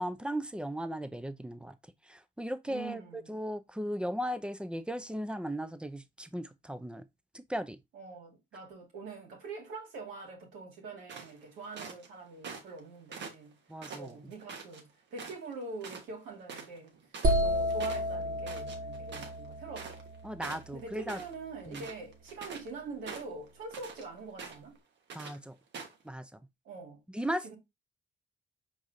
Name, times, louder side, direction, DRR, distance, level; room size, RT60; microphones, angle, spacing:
voice 1, 0.0-1.7 2.1-7.0 7.3-7.8 13.7-14.2 20.2-21.2 21.7-21.9 25.1-25.5 26.0-26.3 27.1-27.5, equal, 5° right, 0.5 m, -37 dB
voice 2, 2.7-3.4 7.9-13.6 14.0-17.0 17.4-20.0 20.7-24.8 26.6-27.0 27.4-27.6, right 4 dB, 85° right, 2.3 m, -44 dB
sound 1, 11.1-12.1 12.4-12.8 13.1-14.8 15.2-15.5 15.8-16.1 16.3-20.2 20.4-21.3 21.6-22.7 23.1-24.0 24.4-24.8 25.1-25.4 25.7-26.0, right 5 dB, 60° right, 1.2 m, -44 dB
sound 2, 17.2-21.0, equal, 45° right, 0.8 m, -32 dB
4.8 x 3.8 x 2.6 m
cardioid pair, 90°, 20 cm